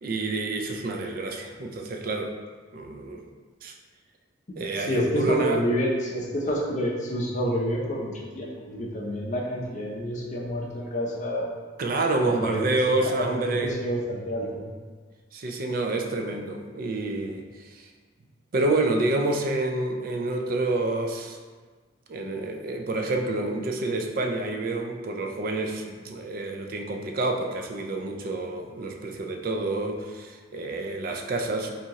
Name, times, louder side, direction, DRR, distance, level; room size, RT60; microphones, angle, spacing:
voice 1, 0.0-2.3 2.7-3.2 3.6-3.7 4.6-5.6 11.8-13.8 15.3-17.9 18.5-21.4 22.1-31.7, right 2 dB, 45° right, 3 dB, 0.3 m, -28 dB
voice 2, 4.8-11.5 12.2-14.6, equal, 35° left, -2 dB, 0.5 m, -28 dB
3.6 x 2.8 x 2.8 m, 1.4 s
head